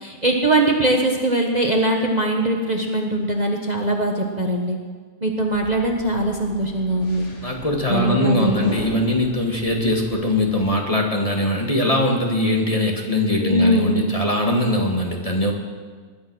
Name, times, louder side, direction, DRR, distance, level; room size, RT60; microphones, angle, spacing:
voice 1, 0.0-4.8 5.2-7.3 7.9-8.7 13.4-14.1, right 1 dB, 30° right, 1 dB, 1.4 m, -21 dB
sound 1, 5.5-10.7, left 1 dB, 50° left, 2.5 m, -38 dB
voice 2, 7.4-15.5, left 1 dB, 25° left, 1 dB, 1.9 m, -21 dB
20.5 x 11.5 x 6.2 m, 1.5 s
omnidirectional pair, 1.6 m